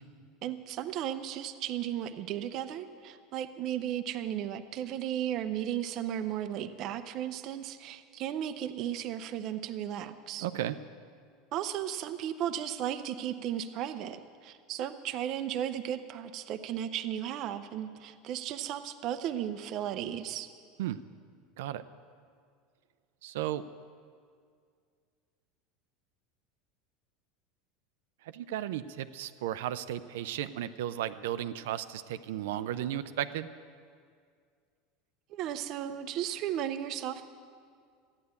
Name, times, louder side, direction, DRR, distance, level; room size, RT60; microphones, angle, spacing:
voice 1, 0.4-10.5 11.5-20.5 35.3-37.3, right 10 dB, 35° right, 9 dB, 0.6 m, -35 dB
voice 2, 10.4-10.8 20.8-21.0 21.6-21.8 23.2-23.6 28.2-33.5, right 12 dB, 80° right, 11 dB, 0.5 m, -34 dB
14.0 x 9.9 x 8.2 m, 2.1 s
supercardioid pair, 180°, 0 cm